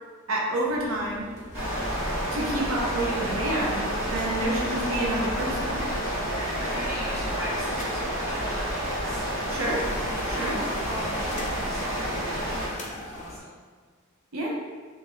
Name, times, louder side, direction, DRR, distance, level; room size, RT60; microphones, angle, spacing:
voice 1, 0.3-1.3 2.3-5.9 6.6-6.9 9.5-9.9 10.4-10.6 14.3-14.5, right 1 dB, 80° right, -3 dB, 0.6 m, -29 dB
sound 1, 0.7-13.4, left 1 dB, 35° left, 0.4 m, -42 dB
sound 2, 1.5-12.7, equal, 30° right, 1.3 m, -29 dB
voice 2, 6.6-9.3 10.2-12.6 13.1-13.6, equal, 15° right, -7 dB, 0.8 m, -40 dB
2.9 x 2.2 x 3.4 m, 1.5 s
head